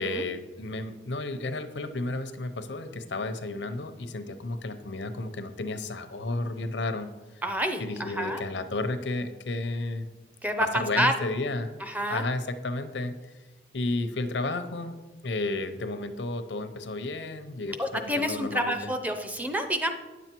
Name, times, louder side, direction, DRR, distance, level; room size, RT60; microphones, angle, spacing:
voice 1, 0.0-7.1 7.8-10.1 10.6-11.7 12.1-13.1 13.7-15.0 15.2-18.9, left 2 dB, 85° left, 9 dB, 0.8 m, -32 dB
voice 2, 7.4-8.4 10.4-10.7 10.9-11.1 11.8-12.2 17.8-19.9, equal, 10° right, 6 dB, 0.6 m, -28 dB
9.6 x 7.1 x 4.5 m, 1.2 s
head